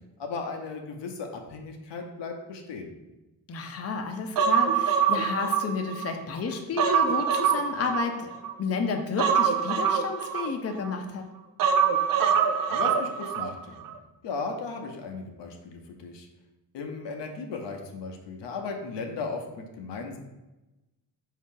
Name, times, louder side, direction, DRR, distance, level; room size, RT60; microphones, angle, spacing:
voice 1, 0.2-2.9 12.7-13.8 14.2-16.3 16.7-20.2, left 4 dB, 70° left, 3 dB, 0.7 m, -36 dB
voice 2, 3.5-8.3 8.6-11.3, left 5 dB, 35° left, 4 dB, 0.6 m, -31 dB
Human voice, 4.4-6.1 6.5-8.5 9.2-10.9 11.6-13.5 13.8-13.9, right 7 dB, 50° right, 0.5 m, -24 dB
4.0 x 2.7 x 3.7 m, 1.1 s
supercardioid pair, 60°, 45 cm